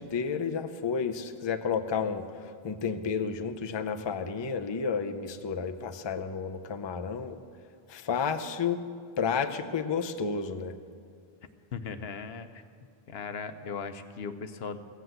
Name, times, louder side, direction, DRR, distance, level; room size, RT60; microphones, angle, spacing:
voice 1, 0.0-2.3 2.6-7.4 7.9-8.8 9.2-10.8, left 6 dB, 35° left, 7 dB, 0.5 m, -31 dB
voice 2, 11.7-12.6 13.1-14.8, left 5 dB, 75° left, 10 dB, 0.9 m, -38 dB
15.0 x 7.9 x 7.7 m, 2.2 s
omnidirectional pair, 1.1 m